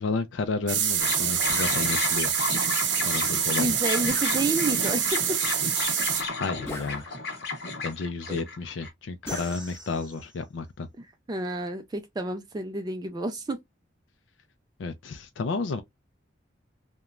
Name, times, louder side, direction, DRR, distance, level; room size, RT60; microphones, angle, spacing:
voice 1, 0.0-2.3 3.0-3.7 6.4-7.0 7.8-10.9 14.8-15.8, left 4 dB, 70° left, 0.4 m, -32 dB
sound 1, 0.7-6.2, right 9 dB, 65° right, 0.6 m, -26 dB
sound 2, 1.0-8.9, left 3 dB, 55° left, 0.9 m, -32 dB
sound 3, 1.5-1.8 4.1-4.9 6.7-7.5 9.3-10.4, left 1 dB, 15° left, 0.7 m, -40 dB
voice 2, 3.6-5.2 8.3-8.4 11.0-13.6, right 2 dB, 20° right, 0.3 m, -30 dB
2.9 x 2.2 x 2.4 m
head